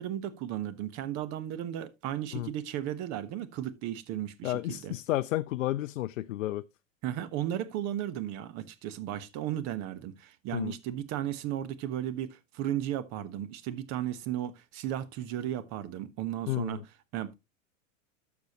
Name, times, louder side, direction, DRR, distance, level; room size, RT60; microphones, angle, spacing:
voice 1, 0.0-4.9 7.0-16.8 17.1-17.3, right 11 dB, 45° right, 1.1 m, -35 dB
voice 2, 4.4-6.6 10.5-10.7 16.5-16.8, left 16 dB, 75° left, 0.5 m, -31 dB
11.5 x 7.0 x 2.9 m
hypercardioid pair, 100°, 39 cm